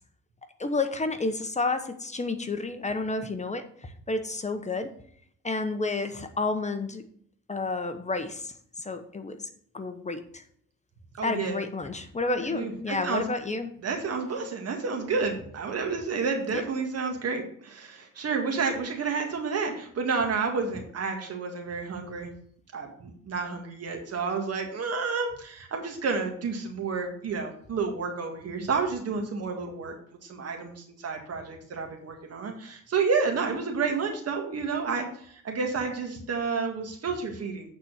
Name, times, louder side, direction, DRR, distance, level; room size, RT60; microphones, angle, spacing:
voice 1, 0.6-4.9 5.4-7.0 7.5-8.5 8.8-9.5 9.7-10.4 11.2-13.7, left 3 dB, 25° left, 8 dB, 1.0 m, -30 dB
voice 2, 11.1-11.6 12.4-13.3 13.8-22.3 22.7-29.9 30.2-37.7, right 4 dB, 55° right, 3 dB, 1.8 m, -30 dB
8.8 x 4.3 x 6.4 m, 0.62 s
cardioid pair, 90°, 30 cm